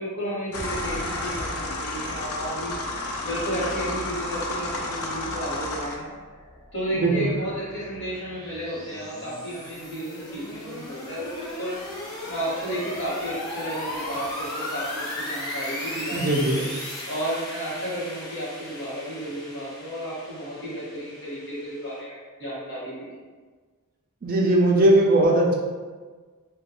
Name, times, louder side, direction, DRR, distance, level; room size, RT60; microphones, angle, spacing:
voice 1, 0.0-2.7 3.2-6.1 6.7-11.8 12.3-16.6 17.1-22.9, right 1 dB, 50° left, -6 dB, 1.1 m, -32 dB
sound 1, 0.5-5.9, left 2 dB, 65° left, 0.4 m, -31 dB
sound 2, 6.1-22.0, left 1 dB, 15° left, 0.5 m, -37 dB
voice 2, 16.1-16.6 24.2-25.5, right 1 dB, 40° right, -1 dB, 0.4 m, -19 dB
3.1 x 2.2 x 2.9 m, 1.4 s
head